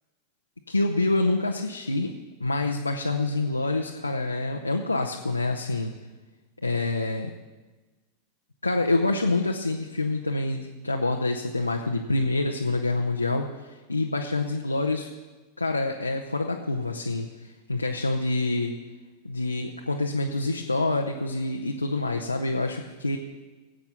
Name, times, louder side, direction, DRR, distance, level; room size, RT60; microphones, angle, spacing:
voice 1, 0.7-2.1 2.4-5.9 6.6-7.3 8.6-15.1 15.6-18.8 19.2-23.2, left 2 dB, 85° left, 2 dB, 0.8 m, -27 dB
17.5 x 8.1 x 5.9 m, 1.2 s
figure-of-eight pair, 90°, 0 cm